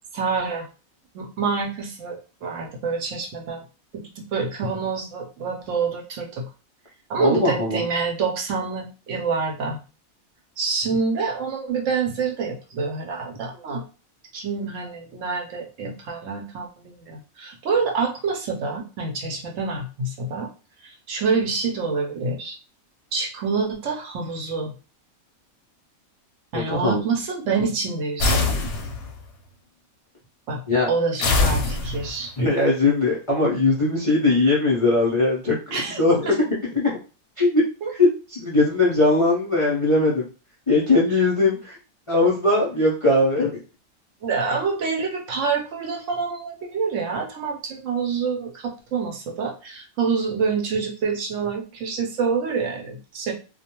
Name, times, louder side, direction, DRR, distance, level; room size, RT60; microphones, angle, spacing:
voice 1, 0.1-0.7 1.1-3.6 3.9-6.4 7.1-9.8 10.6-13.8 14.3-20.5 20.8-22.6 23.1-24.7 26.5-28.5 30.5-30.6 30.9-32.3 35.7-36.0 36.3-36.4 37.8-37.9 44.2-53.3, right 5 dB, 70° right, 1 dB, 0.9 m, -27 dB
voice 2, 7.2-7.8 26.5-27.0 30.7-30.9 32.4-36.3 36.7-37.0 37.4-37.6 38.0-40.3 40.7-41.8 42.1-43.6, left 2 dB, 45° left, -5 dB, 0.4 m, -20 dB
sound 1, 28.2-29.2 31.2-32.3, left 3 dB, 65° left, 0.8 m, -22 dB
2.3 x 2.1 x 2.9 m, 0.34 s
omnidirectional pair, 1.5 m